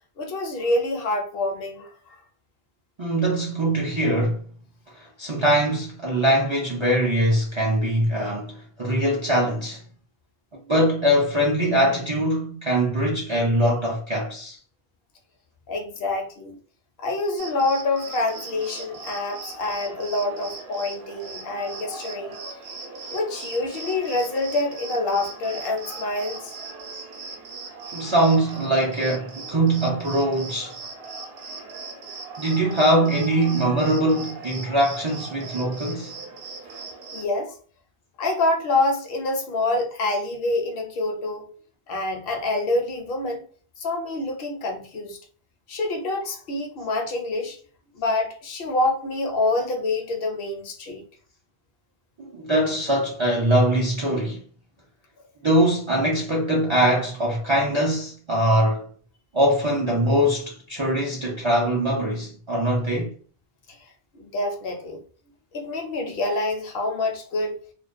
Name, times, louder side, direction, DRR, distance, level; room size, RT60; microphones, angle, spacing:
voice 1, 0.2-2.2 15.7-16.6 17.0-22.4 23.1-26.5 31.5-31.6 37.1-37.5 38.2-41.5 41.9-43.4 43.8-45.2 45.7-47.6 47.9-51.0 64.1-65.0 65.5-67.6, left 2 dB, 70° left, 0.8 m, -26 dB
voice 2, 3.0-4.4 5.0-9.8 10.7-14.6 27.9-30.7 32.4-36.1 52.2-54.4 55.4-58.9 59.3-63.1, right 1 dB, 45° right, 0.4 m, -22 dB
Cricket, 17.4-37.3, right 3 dB, 75° right, 0.8 m, -39 dB
2.3 x 2.1 x 2.4 m
omnidirectional pair, 1.0 m